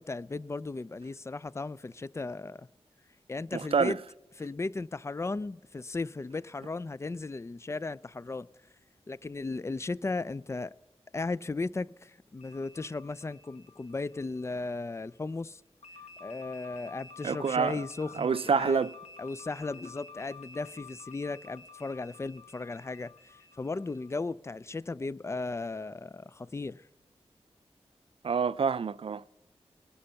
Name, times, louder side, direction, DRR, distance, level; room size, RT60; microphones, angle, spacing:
voice 1, 0.0-2.7 3.3-4.0 4.4-8.5 9.1-10.7 11.1-15.6 16.2-18.9 19.2-26.9, left 3 dB, 25° left, 0.3 m, -36 dB
voice 2, 3.5-3.9 17.2-17.8 18.2-18.9 28.2-29.2, right 6 dB, 55° right, 0.4 m, -27 dB
sound 1, 12.4-14.9 15.8-24.1, left 4 dB, 80° left, 0.9 m, -51 dB
19.5 x 6.9 x 5.6 m
cardioid pair, 45°, 11 cm